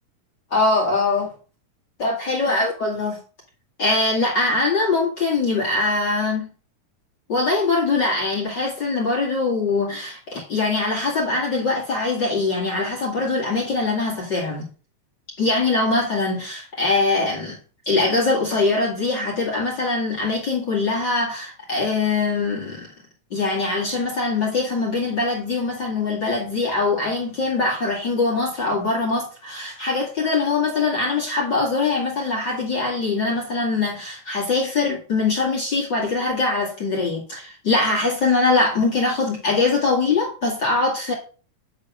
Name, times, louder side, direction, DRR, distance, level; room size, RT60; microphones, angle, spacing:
voice 1, 0.5-1.3 2.0-3.2 3.8-6.5 7.3-14.6 15.4-17.6 17.9-22.9 23.3-41.1, left 3 dB, 35° left, 2.4 m, -22 dB
9.7 x 4.0 x 6.2 m
omnidirectional pair, 4.4 m